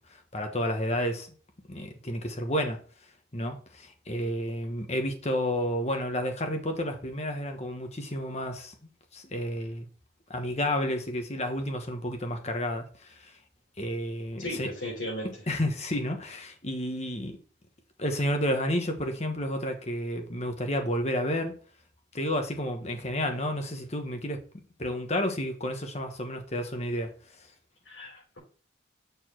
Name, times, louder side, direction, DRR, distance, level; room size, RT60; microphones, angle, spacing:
voice 1, 0.3-1.3 1.7-2.8 3.3-8.7 9.1-9.9 10.3-13.3 13.8-14.7 15.2-17.4 18.0-21.5 22.1-24.4 24.8-27.1, equal, 35° left, 1.2 m, -31 dB
voice 2, 14.4-15.3 27.9-28.4, left 1 dB, 75° left, 3.7 m, -36 dB
6.9 x 4.5 x 4.5 m
head